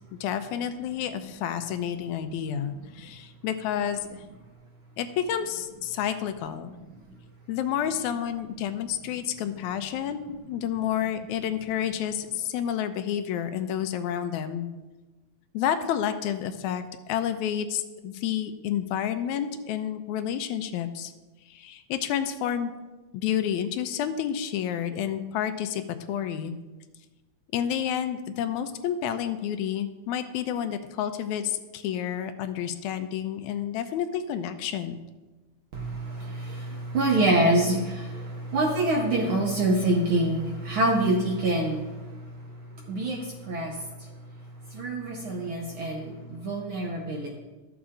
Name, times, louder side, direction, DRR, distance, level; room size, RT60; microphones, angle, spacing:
voice 1, 0.2-4.2 5.0-6.7 7.5-14.7 15.5-21.1 21.5-22.7 23.1-25.8 26.1-26.5 27.5-35.0, left 9 dB, 85° left, 9 dB, 2.0 m, -30 dB
voice 2, 35.7-42.6 42.9-44.1 44.7-47.3, right 1 dB, 70° right, 0 dB, 1.2 m, -26 dB
12.0 x 7.1 x 3.7 m, 1.2 s
omnidirectional pair, 3.4 m